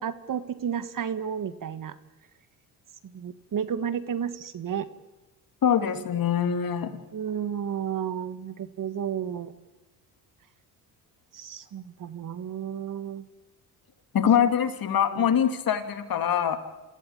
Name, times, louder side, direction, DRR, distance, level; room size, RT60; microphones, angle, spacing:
voice 1, 0.0-1.9 3.0-4.9 7.1-9.5 11.3-13.3 15.1-15.3, right 8 dB, 45° right, 13 dB, 1.6 m, -32 dB
voice 2, 5.6-6.9 14.1-16.6, left 8 dB, 45° left, 8 dB, 2.7 m, -23 dB
27.5 x 15.5 x 8.7 m, 1.1 s
hypercardioid pair, 65°, 47 cm